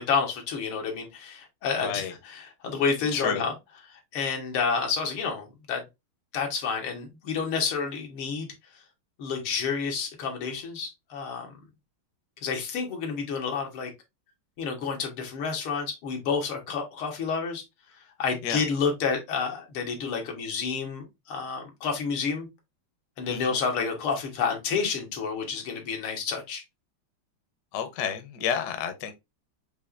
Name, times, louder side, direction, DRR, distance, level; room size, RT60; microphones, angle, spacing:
voice 1, 0.0-3.5 3.9-5.8 6.3-8.5 9.2-11.5 12.4-13.9 14.6-17.6 18.2-22.5 23.2-26.6, left 5 dB, 90° left, 2.1 m, -29 dB
voice 2, 1.8-2.1 3.0-3.4 18.4-18.6 23.3-23.6 27.7-29.1, left 8 dB, 65° left, 1.1 m, -31 dB
6.6 x 2.9 x 2.4 m
omnidirectional pair, 2.3 m